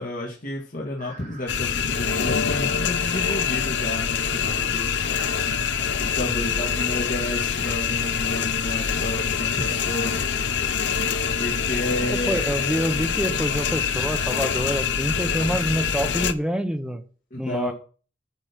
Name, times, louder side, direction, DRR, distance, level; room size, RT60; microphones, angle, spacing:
voice 1, 0.0-4.9 6.0-10.2 11.4-12.4 17.3-17.7, left 1 dB, 50° left, 1.9 m, -31 dB
sound 1, 1.0-16.1, right 4 dB, 50° right, 3.8 m, -45 dB
sound 2, 1.5-16.3, left 7 dB, 75° left, 0.7 m, -25 dB
voice 2, 12.1-17.0 17.4-17.7, equal, 5° right, 1.0 m, -27 dB
9.2 x 5.3 x 6.1 m
head